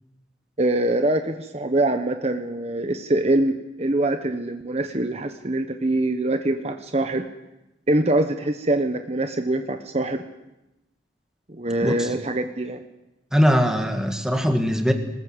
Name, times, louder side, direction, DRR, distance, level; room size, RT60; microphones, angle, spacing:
voice 1, 0.6-7.2 7.9-10.2 11.5-12.8, right 1 dB, 35° right, 7 dB, 1.2 m, -24 dB
voice 2, 13.3-14.9, equal, 5° right, 5 dB, 2.2 m, -21 dB
22.5 x 20.0 x 8.1 m, 0.95 s
head